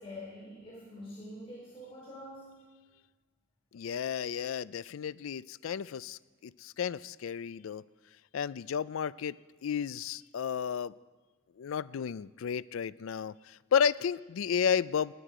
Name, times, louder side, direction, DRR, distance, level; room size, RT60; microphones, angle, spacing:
voice 1, 0.0-2.7, left 1 dB, 30° left, -5 dB, 3.4 m, -46 dB
voice 2, 3.7-7.8 8.3-9.3 9.6-10.9 11.6-15.1, left 7 dB, 90° left, 19 dB, 0.4 m, -32 dB
19.0 x 9.9 x 4.9 m, 1.4 s
head